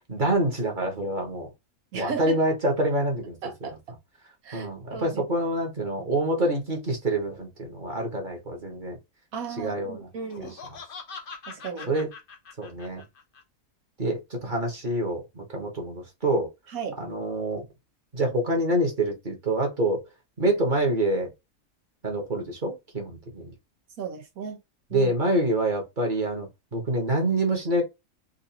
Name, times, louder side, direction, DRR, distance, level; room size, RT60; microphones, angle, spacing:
voice 1, 0.1-1.5 1.9-3.7 4.5-9.0 9.6-10.1 10.4-10.5 11.9-12.1 12.6-13.0 14.0-16.5 17.0-17.6 18.1-20.0 20.4-21.3 22.0-23.5 24.9-27.8, right 1 dB, 35° right, 1.3 m, -26 dB
voice 2, 1.9-2.4 3.4-3.8 4.4-5.2 9.3-10.6 11.5-11.9 16.7-17.0 24.0-24.6 24.9-25.1, right 6 dB, 85° right, 1.5 m, -35 dB
Laughter, 10.2-13.4, left 5 dB, 45° left, 0.8 m, -42 dB
3.9 x 2.6 x 2.7 m
omnidirectional pair, 1.5 m